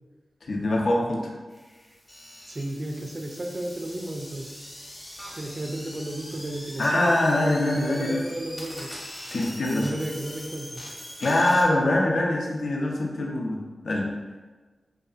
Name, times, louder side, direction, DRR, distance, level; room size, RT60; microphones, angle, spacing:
voice 1, 0.5-1.3 6.8-8.2 9.3-9.9 11.2-13.6 13.8-14.1, left 1 dB, 70° left, -1 dB, 0.4 m, -23 dB
sound 1, 1.5-11.6, equal, 25° left, 0.7 m, -42 dB
voice 2, 2.5-4.5 5.4-9.0 9.7-10.8, right 1 dB, 40° right, 2 dB, 0.3 m, -33 dB
2.7 x 2.3 x 2.4 m, 1.3 s
wide cardioid pair, 75°, 0 cm